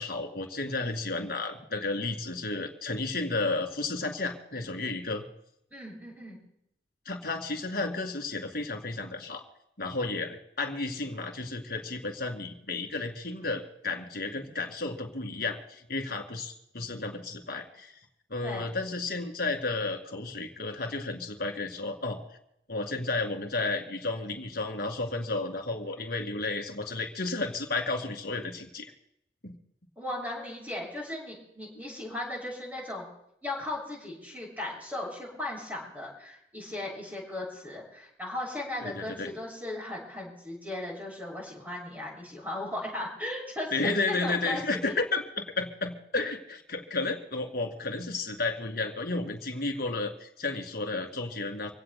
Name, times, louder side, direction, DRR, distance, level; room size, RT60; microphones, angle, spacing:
voice 1, 0.0-5.2 7.1-9.4 9.8-18.0 18.3-22.2 22.7-28.9 29.4-29.6 38.8-39.3 43.7-51.7, left 3 dB, 55° left, 3 dB, 2.2 m, -32 dB
voice 2, 5.7-6.4 18.4-18.7 30.0-33.0 33.4-45.0, left 1 dB, 10° right, -3 dB, 6.8 m, -37 dB
27.0 x 17.0 x 2.2 m, 0.77 s
head